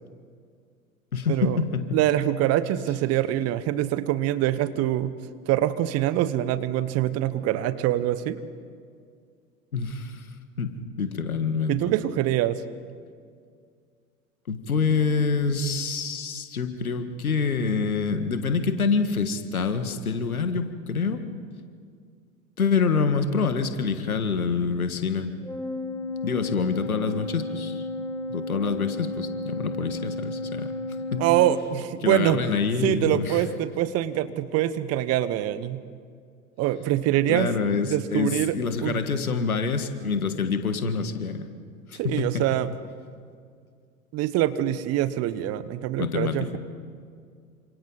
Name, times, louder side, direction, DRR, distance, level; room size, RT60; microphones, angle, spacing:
voice 1, 1.1-2.0 9.7-10.3 10.6-11.8 14.5-21.2 22.6-25.3 26.2-27.8 28.3-31.3 32.0-33.4 37.3-41.5 41.9-42.5 46.0-46.6, left 5 dB, 80° left, 8 dB, 1.8 m, -26 dB
voice 2, 1.9-5.1 5.5-8.4 11.7-12.6 31.2-32.4 32.8-35.8 36.6-37.5 37.8-38.5 38.8-39.0 42.0-42.7 44.1-46.6, right 13 dB, 35° right, 14 dB, 1.0 m, -24 dB
Organ, 25.4-32.0, left 2 dB, 5° left, 2.4 m, -33 dB
29.0 x 26.5 x 4.1 m, 2.1 s
figure-of-eight pair, 90°, 42 cm